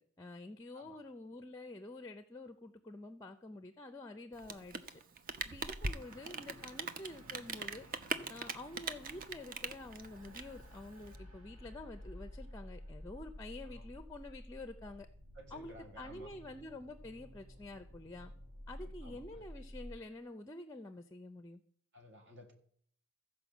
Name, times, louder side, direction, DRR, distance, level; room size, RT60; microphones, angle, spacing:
voice 1, 0.2-5.0 5.4-7.8 8.3-15.1 15.5-18.3 18.7-21.6, left 2 dB, 15° left, 10 dB, 0.5 m, -48 dB
Rain, 4.3-11.2, right 4 dB, 40° right, 0.6 m, -41 dB
sound 1, 6.0-20.0, equal, 80° right, 3.1 m, -52 dB
voice 2, 15.4-16.3 18.8-19.5 21.9-22.5, equal, 55° right, 3 dB, 2.0 m, -56 dB
14.5 x 5.0 x 7.2 m, 0.62 s
head